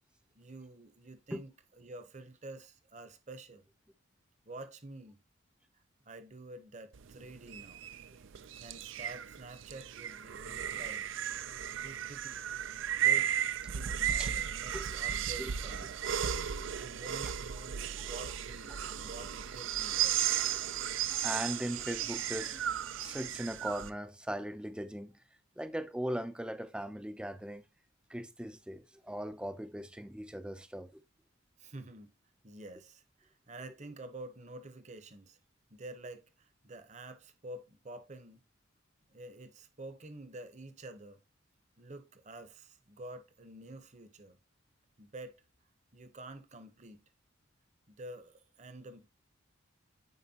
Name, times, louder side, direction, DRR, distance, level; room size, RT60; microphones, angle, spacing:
voice 1, 0.3-1.5 1.8-3.6 4.4-5.2 6.1-7.8 8.6-11.0 11.8-12.4 13.0-13.3 13.7-16.1 16.8-20.4 31.6-32.2 32.4-35.4 35.7-38.4 39.1-41.2 41.8-44.4 45.0-45.4 45.9-47.0 47.9-49.0, right 2 dB, 35° right, 0.9 m, -49 dB
sound 1, 6.9-23.9, right 10 dB, 70° right, 0.5 m, -35 dB
voice 2, 21.0-25.2 25.6-27.7 28.1-31.0, equal, 5° right, 0.5 m, -39 dB
9.4 x 4.7 x 2.8 m
head